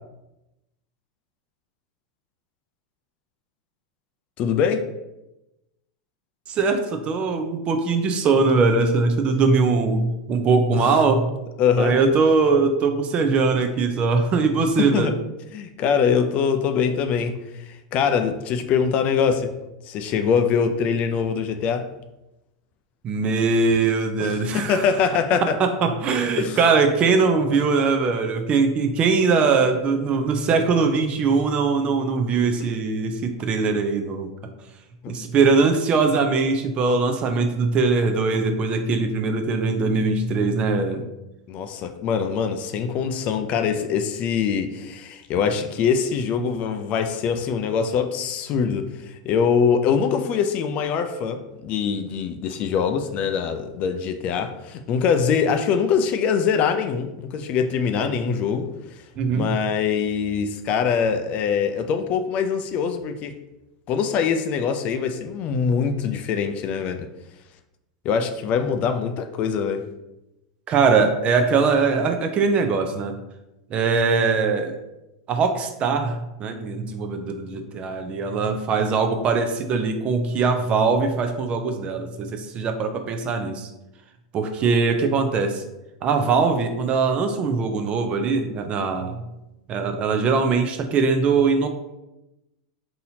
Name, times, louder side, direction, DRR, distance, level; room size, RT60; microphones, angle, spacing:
voice 1, 4.4-4.9 10.8-10.9 11.6-12.0 14.8-15.1 15.5-19.5 19.8-21.9 24.2-25.5 26.4-26.6 35.0-35.1 41.5-58.7 59.3-63.4 63.9-67.1 68.0-69.8, left 6 dB, 40° left, 7 dB, 0.4 m, -23 dB
voice 2, 6.5-11.3 11.8-15.1 23.0-24.9 25.6-34.3 35.1-41.0 59.2-59.6 70.7-73.2 73.7-74.7 75.3-83.7 84.3-85.6 86.0-89.2 89.7-91.7, right 4 dB, 35° right, 6 dB, 0.5 m, -21 dB
4.0 x 2.8 x 2.7 m, 0.95 s
hypercardioid pair, 115°, 4 cm